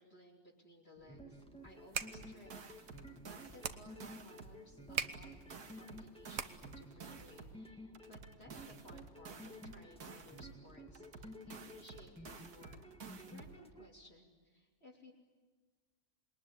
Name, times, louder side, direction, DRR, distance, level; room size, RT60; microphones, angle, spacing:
voice 1, 0.0-2.5 2.8-12.9 13.2-15.1, left 1 dB, 40° left, -3 dB, 3.7 m, -60 dB
sound 1, 1.0-13.9, equal, 5° left, 1.7 m, -54 dB
sound 2, 1.7-6.9, right 7 dB, 65° right, 1.4 m, -44 dB
sound 3, 1.9-4.6 4.9-7.6 7.9-10.6 10.9-13.6, right 5 dB, 80° right, 2.2 m, -52 dB
27.5 x 21.5 x 10.0 m, 1.4 s
omnidirectional pair, 1.6 m